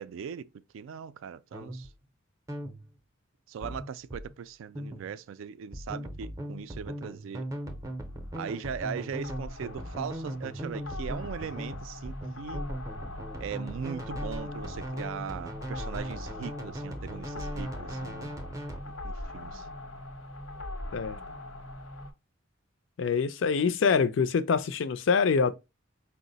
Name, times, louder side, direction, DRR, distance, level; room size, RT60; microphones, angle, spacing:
voice 1, 0.0-1.9 3.5-7.5 8.4-12.6 13.4-18.3 18.8-19.7, right 7 dB, 75° right, 0.3 m, -39 dB
sound 1, 1.5-1.9 2.5-2.9 3.6-4.4 4.8-5.2 5.7-18.8, equal, 15° right, 0.5 m, -39 dB
sound 2, 7.6-22.1, left 1 dB, 85° left, 0.8 m, -41 dB
voice 2, 23.0-25.5, left 5 dB, 65° left, 0.4 m, -25 dB
4.5 x 2.0 x 3.8 m
head